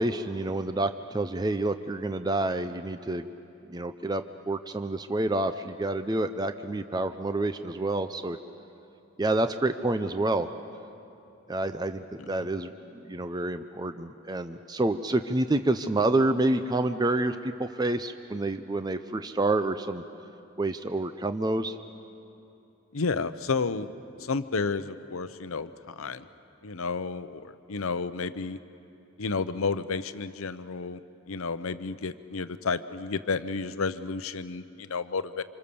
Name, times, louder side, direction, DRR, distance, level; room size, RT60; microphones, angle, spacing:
voice 1, 0.0-3.3 3.7-8.4 9.2-10.5 11.5-20.0 20.6-21.8, right 2 dB, 20° right, 9 dB, 0.5 m, -28 dB
voice 2, 22.9-23.9 24.2-26.3 26.6-28.6 29.2-31.0 31.3-35.4, left 4 dB, 75° left, 12 dB, 0.7 m, -31 dB
27.5 x 26.5 x 6.9 m, 2.8 s
head